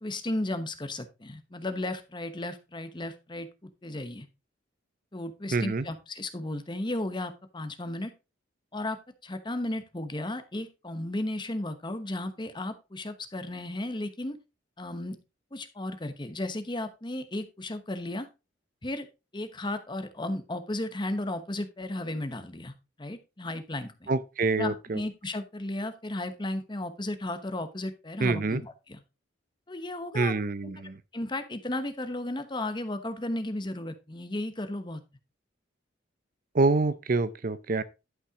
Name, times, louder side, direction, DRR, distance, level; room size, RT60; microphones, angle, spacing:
voice 1, 0.0-4.3 5.1-8.1 8.7-14.4 14.8-15.2 15.5-18.3 18.8-19.1 19.3-22.7 23.0-24.1 24.6-29.0 29.7-30.3 30.6-30.7 31.1-35.0, left 1 dB, 25° left, 1.0 m, -34 dB
voice 2, 5.5-5.8 24.1-25.0 28.2-28.6 30.1-31.0 36.5-37.8, right 3 dB, 45° right, 0.5 m, -26 dB
11.5 x 5.7 x 3.6 m
head